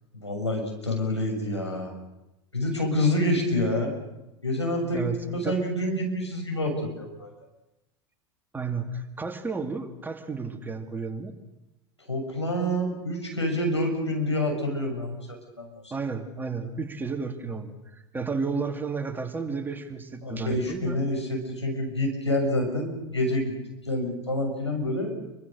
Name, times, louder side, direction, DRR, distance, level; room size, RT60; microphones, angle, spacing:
voice 1, 0.1-1.9 2.5-3.9 4.4-7.3 12.1-15.2 15.6-15.9 20.2-23.5 23.8-25.1, left 1 dB, 90° left, 1 dB, 6.8 m, -27 dB
voice 2, 8.5-11.3 15.9-17.7 18.1-21.0, right 4 dB, 15° right, 5 dB, 3.1 m, -32 dB
29.0 x 24.0 x 6.7 m, 0.95 s
figure-of-eight pair, 80°, 14 cm